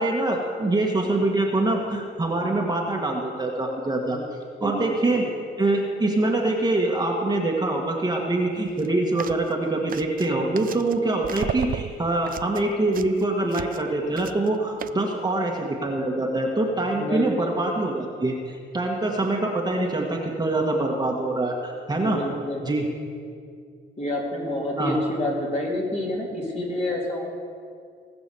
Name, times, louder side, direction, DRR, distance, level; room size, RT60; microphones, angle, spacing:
voice 1, 0.0-4.2 4.6-5.2 5.6-22.2 22.6-22.9 24.8-25.0, right 2 dB, 20° right, 0 dB, 1.6 m, -24 dB
voice 2, 4.6-5.2 16.9-17.6 21.9-22.6 24.0-27.3, left 1 dB, 35° left, -3 dB, 3.4 m, -28 dB
sound 1, 8.7-8.9 9.2-9.5 9.9-11.0 11.2-13.9 14.2-14.5 14.8-14.9, right 9 dB, 45° right, 0.5 m, -34 dB
18.0 x 6.1 x 7.0 m, 2.3 s
cardioid pair, 90°, 20 cm